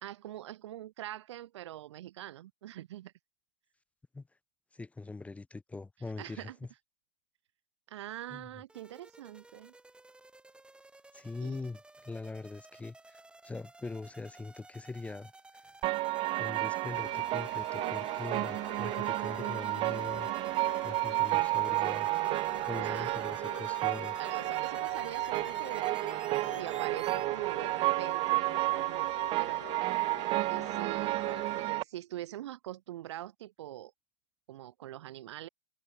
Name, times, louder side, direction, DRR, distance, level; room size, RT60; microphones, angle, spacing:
voice 1, 0.0-3.1 6.2-6.6 7.9-9.7 11.4-11.6 22.7-23.2 24.2-25.9 26.4-29.7 30.5-33.9 34.5-35.5, right 13 dB, 75° right, 2.3 m, -44 dB
voice 2, 4.7-6.7 8.3-8.5 11.1-15.3 16.4-20.3 20.8-22.1 22.6-24.1, left 3 dB, 10° left, 1.1 m, -42 dB
sound 1, 8.7-27.2, right 2 dB, 5° right, 3.1 m, -54 dB
sound 2, 15.8-31.8, right 19 dB, 35° right, 0.4 m, -31 dB
sound 3, 16.9-31.7, left 10 dB, 85° left, 2.4 m, -48 dB
hypercardioid pair, 115°, 15 cm